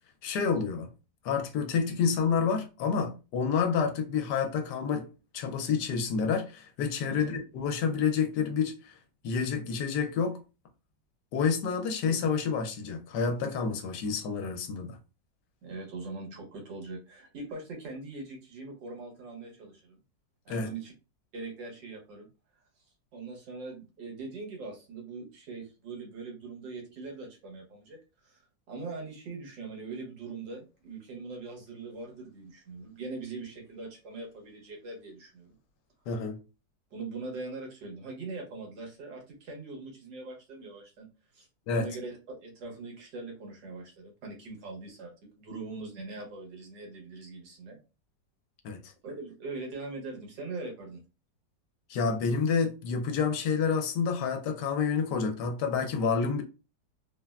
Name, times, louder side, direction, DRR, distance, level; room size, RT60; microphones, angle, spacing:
voice 1, 0.2-0.9 1.2-5.1 5.3-9.0 9.2-10.4 11.3-15.0 20.5-20.7 36.1-36.4 41.7-41.8 48.6-48.9 51.9-56.4, left 6 dB, 75° left, 1.2 m, -29 dB
voice 2, 15.6-20.0 20.4-20.9 21.3-22.3 23.1-28.4 28.7-35.5 36.9-41.1 41.3-41.5 41.7-47.8 49.0-51.0, right 3 dB, 85° right, 1.7 m, -41 dB
3.5 x 2.1 x 2.3 m
omnidirectional pair, 1.9 m